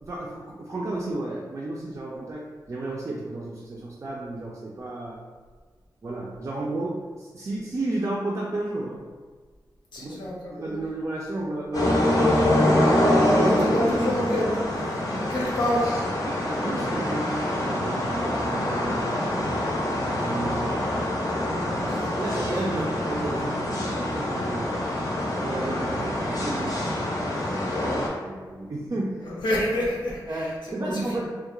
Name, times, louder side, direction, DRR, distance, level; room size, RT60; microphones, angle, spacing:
voice 1, 0.0-5.2 6.0-9.0 10.0-12.1 13.1-13.9 16.2-21.7 22.0-24.7 25.4-27.8 28.2-29.2 30.3-31.3, right 2 dB, 40° right, -4 dB, 0.3 m, -32 dB
voice 2, 9.9-10.7 13.4-14.5 14.8-15.9 21.9-22.1 29.2-30.5 30.8-31.0, left 1 dB, 85° left, -5 dB, 0.7 m, -28 dB
sound 1, 11.7-28.1, left 1 dB, 50° left, 0.6 m, -25 dB
2.2 x 2.1 x 3.0 m, 1.5 s
wide cardioid pair, 100°, 8 cm